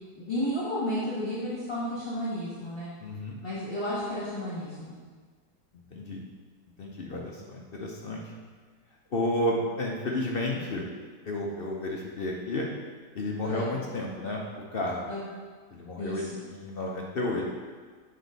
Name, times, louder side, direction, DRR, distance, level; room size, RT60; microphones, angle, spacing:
voice 1, 0.1-2.9 3.4-4.9 13.4-13.7 15.1-15.2 16.0-16.4, left 1 dB, 35° left, -8 dB, 1.6 m, -32 dB
voice 2, 3.0-3.3 5.9-6.2 6.8-8.2 9.1-10.9 11.2-12.7 13.1-14.4 14.7-15.1 15.7-17.4, left 1 dB, 55° left, -2 dB, 0.6 m, -31 dB
8.1 x 5.1 x 4.0 m, 1.5 s
omnidirectional pair, 1.8 m